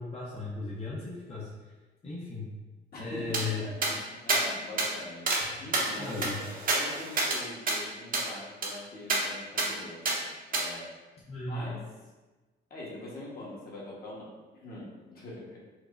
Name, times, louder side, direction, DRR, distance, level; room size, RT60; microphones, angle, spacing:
voice 1, 0.0-1.5 2.0-2.5 3.0-3.7 6.0-6.4 11.3-11.7, left 3 dB, 30° left, -7 dB, 0.7 m, -36 dB
voice 2, 2.9-10.9 11.5-11.8 12.7-14.3 14.6-15.6, left 1 dB, 50° left, -5 dB, 1.1 m, -43 dB
sound 1, 3.3-3.4 3.8-3.9 4.3-4.4 4.8-4.9 5.3-5.4 5.7-7.4 7.7-7.8 8.1-8.3 8.6-8.7 9.1-9.2 9.6-9.7 10.0-10.2 10.5-10.6, right 3 dB, 45° right, 0.8 m, -28 dB
4.6 x 2.1 x 2.4 m, 1.2 s
cardioid pair, 90°, 20 cm